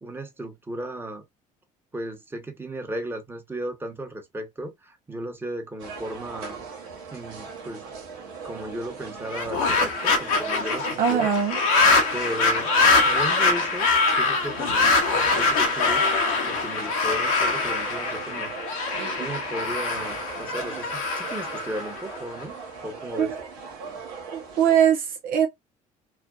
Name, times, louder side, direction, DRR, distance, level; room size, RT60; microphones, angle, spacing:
voice 1, 0.0-1.2 1.9-6.6 7.1-7.8 8.4-11.3 12.1-12.7 13.0-16.0 16.5-18.5 19.1-22.6 22.8-23.3, right 1 dB, 15° right, 1.1 m, -35 dB
sound 1, 5.8-24.7, right 5 dB, 85° right, 1.1 m, -39 dB
sound 2, 9.3-22.4, left 3 dB, 85° left, 1.0 m, -23 dB
voice 2, 11.0-11.6 23.2-23.3 24.3-25.5, right 8 dB, 55° right, 0.6 m, -21 dB
3.3 x 2.2 x 2.3 m
supercardioid pair, 75°, 17 cm